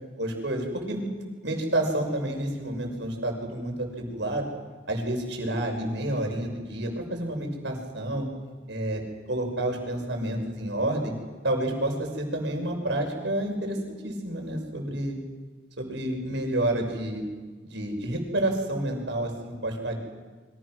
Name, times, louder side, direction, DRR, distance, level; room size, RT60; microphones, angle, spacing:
voice 1, 0.2-1.0 1.4-4.5 4.9-8.3 8.7-9.0 9.3-11.1 11.4-13.8 14.0-15.2 15.8-17.2 17.6-20.0, right 1 dB, 70° right, 2 dB, 6.1 m, -29 dB
28.5 x 24.5 x 6.3 m, 1.4 s
head